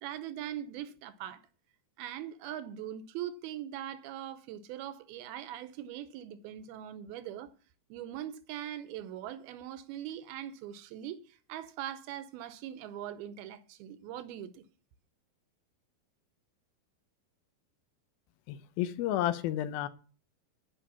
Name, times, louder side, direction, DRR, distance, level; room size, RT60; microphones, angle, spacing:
voice 1, 0.0-1.4 2.0-7.5 7.9-14.6, right 11 dB, 80° right, 2.7 m, -41 dB
voice 2, 18.5-19.9, left 12 dB, 80° left, 2.5 m, -31 dB
12.5 x 5.7 x 7.0 m
omnidirectional pair, 4.5 m